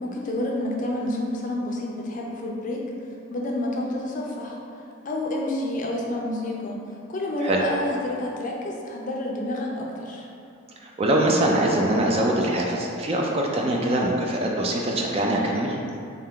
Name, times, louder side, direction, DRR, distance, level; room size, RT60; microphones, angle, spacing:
voice 1, 0.0-2.8 3.3-4.6 5.0-6.8 7.1-10.3, left 1 dB, 40° left, -1 dB, 0.4 m, -29 dB
voice 2, 10.8-15.8, right 1 dB, 30° right, -1 dB, 0.3 m, -23 dB
3.4 x 2.8 x 3.6 m, 2.6 s
head